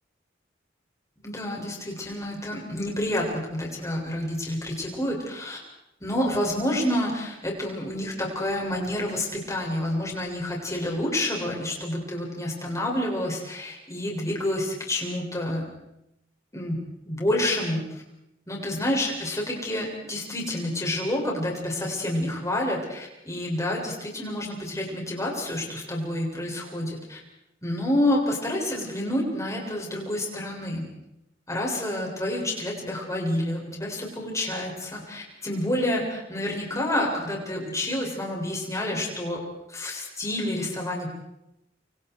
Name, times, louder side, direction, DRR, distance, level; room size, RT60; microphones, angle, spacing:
voice 1, 1.2-5.6 6.0-15.7 16.5-18.0 18.5-27.2 27.6-30.9 31.5-39.4 39.7-41.1, left 1 dB, 15° left, -1 dB, 7.4 m, -28 dB
28.5 x 27.5 x 4.9 m, 0.87 s
head